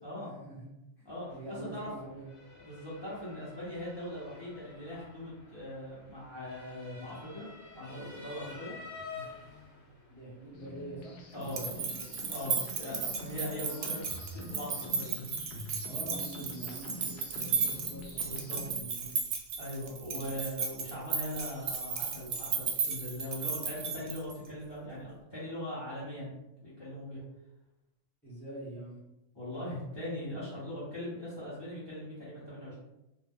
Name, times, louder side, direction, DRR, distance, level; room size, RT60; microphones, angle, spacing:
voice 1, 0.3-0.7 1.0-2.3 10.1-12.0 15.9-19.2 20.1-20.3 28.2-29.0, right 2 dB, ahead, -7 dB, 0.9 m, -45 dB
voice 2, 1.0-1.9 2.6-7.5 7.7-8.8 11.3-11.8 12.3-15.2 18.3-18.6 19.6-26.3 26.6-27.2 29.3-32.8, left 1 dB, 25° left, -9 dB, 0.8 m, -40 dB
Motor vehicle (road) / Siren, 1.1-18.5, left 4 dB, 60° left, 1.1 m, -52 dB
sound 1, 10.5-18.8, left 3 dB, 85° left, 0.4 m, -46 dB
sound 2, 11.4-24.5, right 5 dB, 65° right, 0.8 m, -35 dB
2.5 x 2.0 x 3.5 m, 0.93 s
omnidirectional pair, 1.4 m